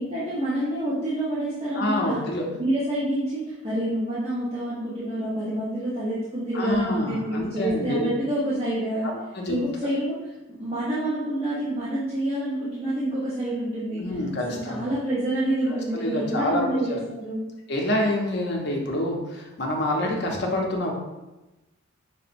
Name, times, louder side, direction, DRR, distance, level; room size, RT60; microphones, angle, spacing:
voice 1, 0.0-2.2 2.5-9.1 9.5-10.2 10.6-14.0 14.5-17.5, right 1 dB, 30° right, -11 dB, 0.7 m, -27 dB
voice 2, 1.7-2.4 6.5-8.1 9.1-9.6 14.0-14.9 15.7-17.0 17.7-20.9, left 1 dB, 55° left, 0 dB, 0.6 m, -27 dB
4.7 x 2.0 x 2.5 m, 1.1 s
head